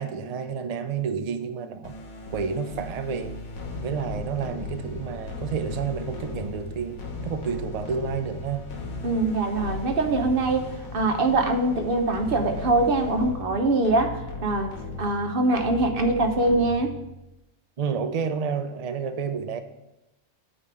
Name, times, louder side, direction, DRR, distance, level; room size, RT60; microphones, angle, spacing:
voice 1, 0.0-2.0 2.3-3.4 3.8-8.7 17.8-19.6, right 6 dB, 85° right, 8 dB, 0.3 m, -30 dB
sound 1, 1.8-17.3, left 2 dB, 80° left, 1.7 m, -37 dB
voice 2, 9.0-10.7 10.9-14.7 15.0-16.9, right 2 dB, 45° right, 4 dB, 1.0 m, -23 dB
8.6 x 4.1 x 6.9 m, 0.94 s
omnidirectional pair, 1.4 m